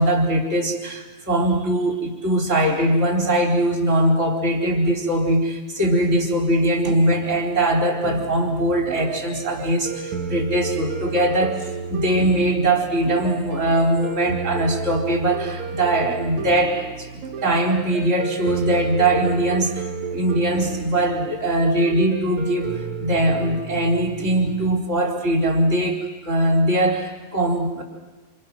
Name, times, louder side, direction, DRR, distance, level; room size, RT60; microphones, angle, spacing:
voice 1, 0.0-19.8 20.1-27.8, right 1 dB, 20° right, 0 dB, 3.9 m, -21 dB
sound 1, 8.0-24.7, right 5 dB, 55° right, 2.8 m, -32 dB
28.5 x 27.5 x 6.3 m, 1.2 s
omnidirectional pair, 4.6 m